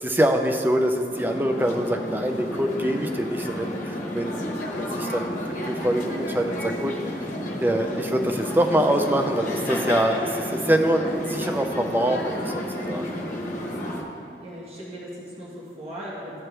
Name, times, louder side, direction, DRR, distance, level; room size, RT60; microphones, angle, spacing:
voice 1, 0.0-7.2 7.6-13.1, right 1 dB, 10° right, 4 dB, 0.4 m, -25 dB
sound 1, 1.1-14.0, left 1 dB, 45° left, 1.0 m, -31 dB
voice 2, 14.4-16.4, equal, 35° right, -7 dB, 1.4 m, -38 dB
13.5 x 4.5 x 3.3 m, 2.6 s
head